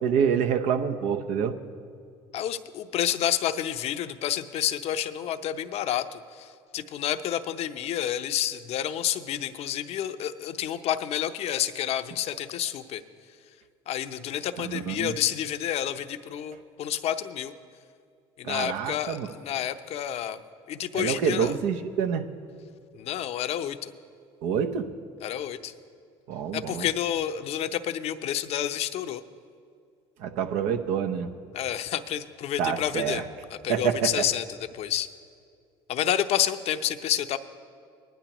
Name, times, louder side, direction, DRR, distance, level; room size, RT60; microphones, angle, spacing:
voice 1, 0.0-1.6 14.6-15.1 18.4-19.3 20.9-22.2 24.4-24.9 26.3-26.9 30.2-31.3 32.6-33.2 33.7-34.2, right 7 dB, 70° right, 6 dB, 0.8 m, -27 dB
voice 2, 2.3-13.0 13.9-17.5 18.4-20.4 20.7-21.6 22.9-23.9 25.2-25.7 26.5-29.2 31.5-33.2 33.5-35.1 35.9-37.4, left 11 dB, 55° left, 10 dB, 0.7 m, -29 dB
20.0 x 10.0 x 3.0 m, 2.2 s
hypercardioid pair, 75°, 12 cm